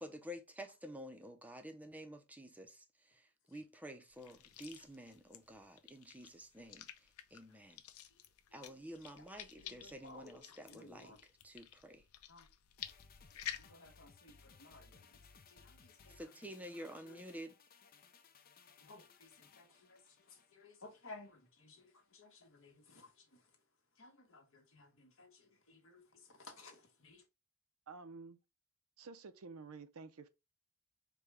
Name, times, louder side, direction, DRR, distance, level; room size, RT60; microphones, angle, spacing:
voice 1, 0.0-7.8 8.5-11.1 11.4-12.0 16.1-17.5, equal, 5° right, 0.6 m, -50 dB
sound 1, 4.1-13.7, left 10 dB, 90° left, 0.5 m, -52 dB
voice 2, 8.1-8.7 9.2-11.2 12.3-12.5 13.4-15.2 15.5-17.2 18.8-27.3, left 3 dB, 65° left, 1.3 m, -59 dB
sound 2, 12.8-21.4 21.7-21.8, left 5 dB, 45° left, 0.5 m, -63 dB
voice 3, 27.9-28.4 29.0-30.3, right 4 dB, 80° right, 0.6 m, -51 dB
4.8 x 2.3 x 4.8 m
head